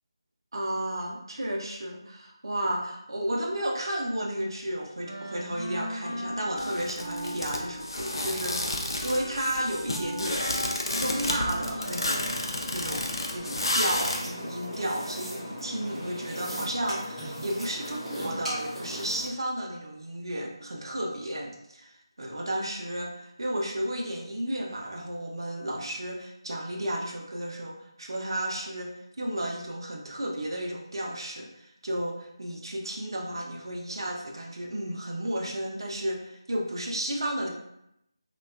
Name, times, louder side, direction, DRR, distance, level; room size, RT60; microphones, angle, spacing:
voice 1, 0.5-10.6 11.0-12.4 12.7-28.9 29.2-37.5, right 1 dB, 60° right, -1 dB, 0.4 m, -33 dB
Wind instrument woodwind instrument, 5.0-12.6, equal, 85° left, 0.8 m, -38 dB
sound 1, 6.6-14.2, left 1 dB, 60° left, 0.4 m, -31 dB
sound 2, 11.5-19.3, equal, 5° right, 0.4 m, -38 dB
2.6 x 2.2 x 2.3 m, 0.81 s
figure-of-eight pair, 160°, 3 cm